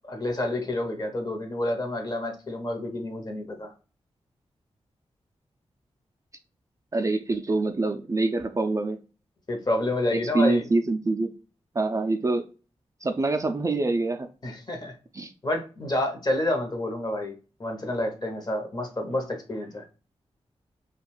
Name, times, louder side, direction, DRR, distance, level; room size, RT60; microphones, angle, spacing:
voice 1, 0.1-3.7 9.5-10.6 14.4-14.9 15.4-19.8, left 1 dB, 35° left, 4 dB, 0.8 m, -29 dB
voice 2, 6.9-9.0 10.1-11.3 11.8-12.5 13.0-14.3 15.1-15.3, right 3 dB, 30° right, 6 dB, 0.3 m, -25 dB
2.4 x 2.3 x 3.1 m, 0.34 s
cardioid pair, 65°, 11 cm